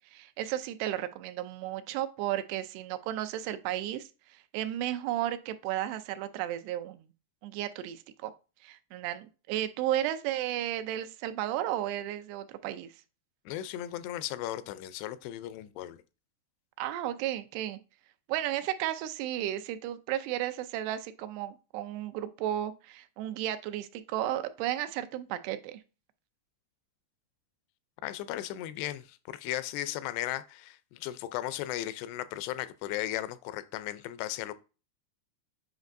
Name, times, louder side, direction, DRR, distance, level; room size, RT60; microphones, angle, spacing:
voice 1, 0.1-7.1 7.4-8.3 8.6-12.9 16.8-17.8 18.3-25.8, right 12 dB, 85° right, 2.7 m, -33 dB
voice 2, 13.5-16.0 28.0-34.5, left 13 dB, 85° left, 2.6 m, -36 dB
8.1 x 5.3 x 2.6 m
omnidirectional pair, 4.7 m